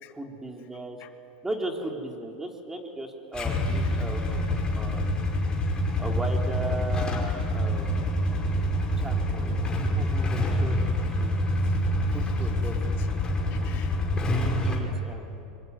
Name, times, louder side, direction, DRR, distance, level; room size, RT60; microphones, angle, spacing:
voice 1, 0.1-1.0 1.4-5.0 6.0-8.1 9.0-9.5 9.8-11.5 12.1-13.0 14.2-15.4, right 2 dB, 10° right, 2 dB, 3.3 m, -37 dB
Motorcycle / Engine starting / Idling, 3.3-14.8, left 1 dB, 20° left, 5.4 m, -26 dB
voice 2, 11.6-12.3 12.6-12.7 13.5-14.0 14.9-15.0, left 14 dB, 50° left, 8 dB, 1.4 m, -51 dB
24.5 x 24.0 x 9.6 m, 2.7 s
supercardioid pair, 130°, 5 cm